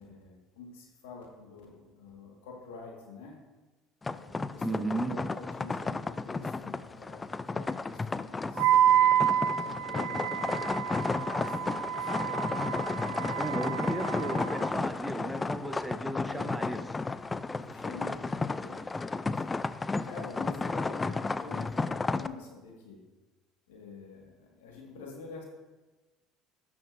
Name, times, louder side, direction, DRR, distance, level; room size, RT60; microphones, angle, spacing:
voice 1, 0.0-3.4 4.1-12.3 13.1-14.0 14.4-14.7 16.2-16.6 17.6-18.9 20.0-23.0 23.7-25.4, left 4 dB, 85° left, -1 dB, 1.6 m, -48 dB
sound 1, 4.0-22.3, left 3 dB, 20° left, 0.3 m, -33 dB
voice 2, 4.6-5.2 13.4-16.8, right 1 dB, 5° right, 7 dB, 0.7 m, -35 dB
Wind instrument woodwind instrument, 8.6-14.7, right 10 dB, 75° right, 0.3 m, -28 dB
12.0 x 6.0 x 2.6 m, 1.2 s
supercardioid pair, 80°, 0 cm